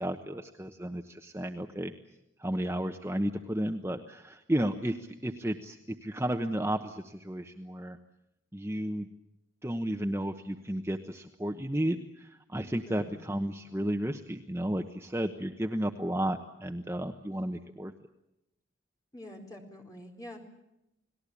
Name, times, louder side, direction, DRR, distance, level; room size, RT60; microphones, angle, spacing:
voice 1, 0.0-1.9 2.4-8.0 8.5-9.1 9.6-17.9, right 1 dB, 15° right, 4 dB, 1.0 m, -33 dB
voice 2, 12.8-13.2 19.1-20.4, left 1 dB, 20° left, 1 dB, 4.4 m, -46 dB
30.0 x 19.5 x 8.5 m, 0.87 s
head